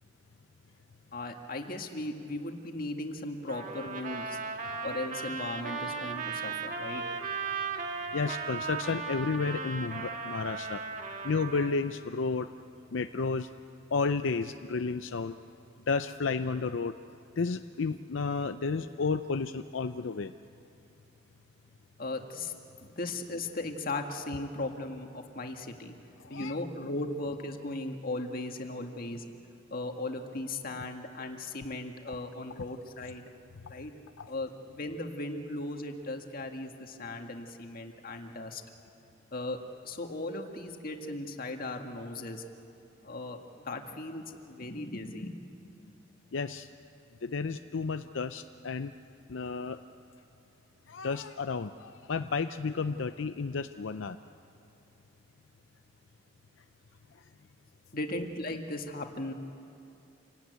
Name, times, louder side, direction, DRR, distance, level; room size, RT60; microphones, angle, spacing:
voice 1, 1.1-4.4 4.8-7.0 22.0-22.5 22.8-25.9 26.3-29.2 29.7-33.3 33.7-33.9 34.3-38.6 39.3-39.6 39.8-42.4 43.0-43.4 43.7-45.4 45.8-45.9 57.9-59.3, left 2 dB, 50° left, 4 dB, 1.8 m, -37 dB
Trumpet, 3.5-11.8, right 5 dB, 45° right, 1.7 m, -36 dB
voice 2, 8.1-10.8 11.2-12.5 12.9-13.5 13.9-15.4 15.9-17.0 17.4-20.3 26.2-26.6 32.1-32.2 34.2-34.3 46.3-46.7 47.2-48.9 49.3-49.8 50.9-54.2, left 4 dB, 85° left, 9 dB, 0.6 m, -32 dB
27.5 x 17.5 x 9.4 m, 2.7 s
head